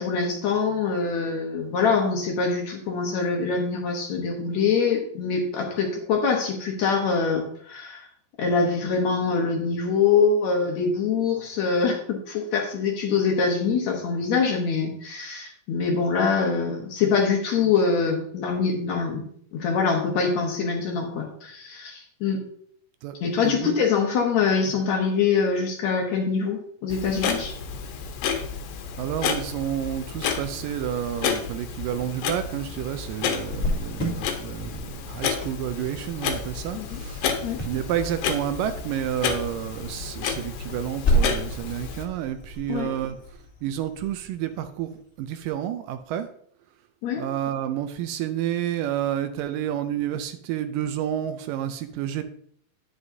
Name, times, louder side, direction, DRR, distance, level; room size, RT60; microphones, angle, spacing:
voice 1, 0.0-8.1 8.4-19.2 19.5-22.4 23.2-27.5 36.7-37.0 37.4-37.6 42.7-42.9 47.0-47.2, left 5 dB, 65° left, 1 dB, 2.0 m, -24 dB
voice 2, 23.4-23.9 29.0-37.3 37.6-46.3 47.2-52.2, right 11 dB, 80° right, 9 dB, 2.1 m, -30 dB
Clock, 26.9-42.1, left 6 dB, 85° left, 2.7 m, -31 dB
Cricket, 33.5-44.9, equal, 25° left, 2.1 m, -32 dB
9.8 x 7.8 x 2.7 m, 0.63 s
omnidirectional pair, 4.1 m